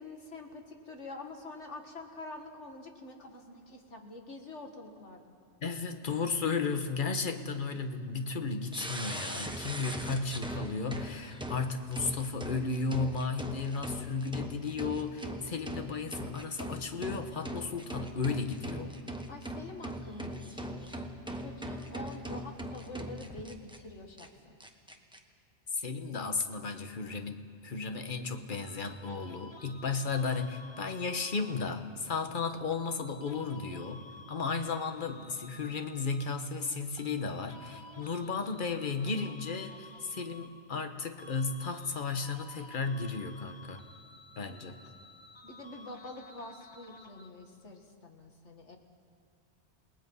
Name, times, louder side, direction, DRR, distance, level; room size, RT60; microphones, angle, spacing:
voice 1, 0.0-5.4 19.3-24.6 44.5-44.7 45.4-48.8, left 2 dB, 85° left, 3 dB, 2.2 m, -46 dB
voice 2, 5.6-18.9 25.7-43.8 44.4-44.8, left 4 dB, 45° left, 7 dB, 1.3 m, -34 dB
sound 1, 8.7-23.8 24.2-24.3 24.6-25.2, equal, 5° right, 1.2 m, -40 dB
sound 2, 28.5-31.9 32.7-36.5 37.0-40.9 41.2-47.5, left 2 dB, 25° left, 0.9 m, -52 dB
28.5 x 19.0 x 5.5 m, 2.2 s
omnidirectional pair, 1.2 m